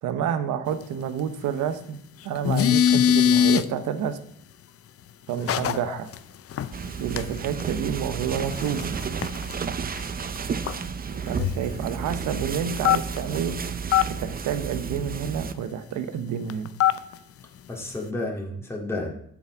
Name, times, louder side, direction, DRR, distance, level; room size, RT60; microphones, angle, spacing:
voice 1, 0.0-4.2 5.3-6.1 7.0-8.9 11.3-13.6 14.1-16.7, right 8 dB, 85° right, 9 dB, 1.0 m, -29 dB
sound 1, 2.4-3.6 5.5-5.8 6.1-6.2 6.5-6.7 7.2-7.3 7.6-7.7 8.5-9.7 10.1-10.2 10.4-10.5 10.7-10.8 11.4-11.8 12.8-13.4 13.9-14.1 16.5-17.1, left 9 dB, 50° left, 0.6 m, -21 dB
voice 2, 5.4-6.0 17.7-19.1, left 2 dB, 10° left, -2 dB, 2.2 m, -32 dB
sound 2, 6.7-15.5, right 6 dB, 30° right, 0.6 m, -32 dB
7.3 x 7.2 x 4.9 m, 0.69 s
cardioid pair, 90°, 30 cm